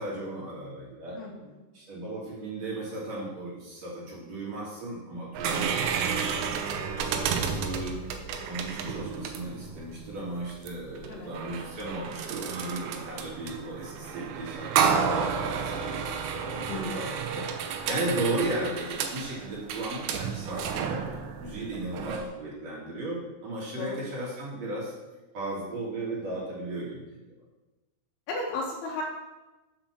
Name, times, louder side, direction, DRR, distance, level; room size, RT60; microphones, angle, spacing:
voice 1, 0.0-1.2 1.7-5.7 6.2-8.0 8.5-16.0 16.3-21.0 21.4-24.9 25.3-27.2, right 2 dB, 40° right, -6 dB, 3.4 m, -35 dB
sound 1, 5.3-22.2, right 6 dB, 80° right, 3.1 m, -31 dB
voice 2, 16.7-17.0 23.8-24.0 28.3-29.0, left 3 dB, 70° left, -3 dB, 2.9 m, -34 dB
7.9 x 7.5 x 6.1 m, 1.1 s
omnidirectional pair, 5.2 m